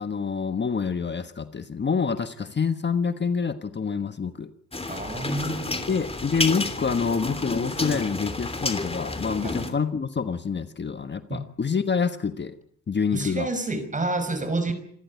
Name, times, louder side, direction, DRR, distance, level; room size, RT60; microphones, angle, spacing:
voice 1, 0.0-4.5 5.9-12.6 12.9-13.5, left 5 dB, 40° left, 9 dB, 1.4 m, -27 dB
sound 1, 4.7-9.7, left 2 dB, 20° left, 3.1 m, -30 dB
voice 2, 4.9-5.7 9.4-9.6 11.3-11.4 13.1-14.7, right 2 dB, 25° right, 10 dB, 5.7 m, -28 dB
28.0 x 13.5 x 9.6 m, 0.69 s
cardioid pair, 105°, 29 cm